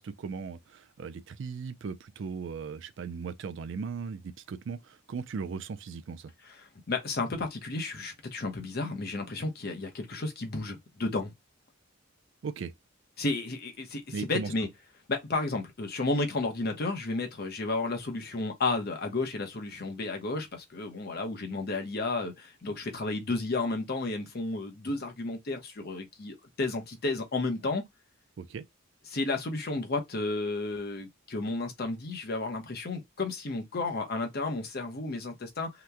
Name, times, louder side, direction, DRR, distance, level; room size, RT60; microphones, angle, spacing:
voice 1, 0.0-6.3 12.4-12.7 14.1-14.5 28.4-28.6, right 5 dB, 60° right, 0.4 m, -37 dB
voice 2, 6.9-11.3 13.2-14.7 15.1-27.8 29.1-35.7, left 3 dB, 50° left, 0.8 m, -32 dB
2.9 x 2.1 x 3.4 m
head